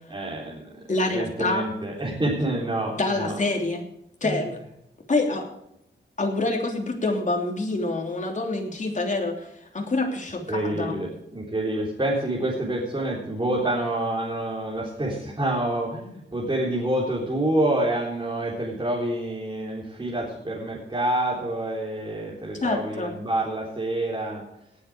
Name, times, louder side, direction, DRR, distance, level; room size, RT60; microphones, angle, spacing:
voice 1, 0.1-0.7 1.1-3.4 4.2-4.4 10.5-24.4, right 1 dB, 25° right, -5 dB, 3.8 m, -27 dB
voice 2, 0.9-1.6 2.9-3.8 4.2-4.6 5.1-5.5 6.2-11.0 22.6-23.2, left 2 dB, 40° left, 2 dB, 3.2 m, -26 dB
18.5 x 8.2 x 5.0 m, 0.81 s
wide cardioid pair, 120°, 20 cm